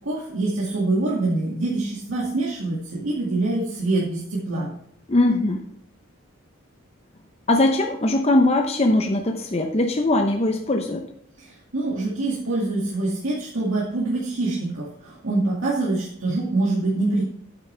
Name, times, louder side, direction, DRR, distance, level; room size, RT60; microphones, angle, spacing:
voice 1, 0.0-4.7 11.7-17.2, right 2 dB, 80° right, -5 dB, 2.2 m, -25 dB
voice 2, 5.1-5.6 7.5-11.0, left 2 dB, 30° left, 3 dB, 0.7 m, -20 dB
9.1 x 9.0 x 3.3 m, 0.71 s
head